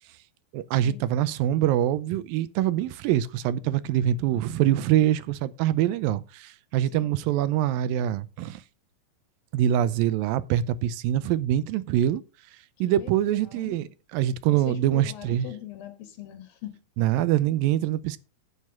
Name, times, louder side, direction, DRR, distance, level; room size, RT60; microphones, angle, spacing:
voice 1, 0.5-8.6 9.5-12.2 12.8-15.5 17.0-18.2, right 12 dB, 80° right, 2.3 m, -24 dB
voice 2, 13.4-13.8 14.5-16.8, left 12 dB, 75° left, 3.1 m, -41 dB
9.8 x 8.4 x 5.4 m
omnidirectional pair, 4.3 m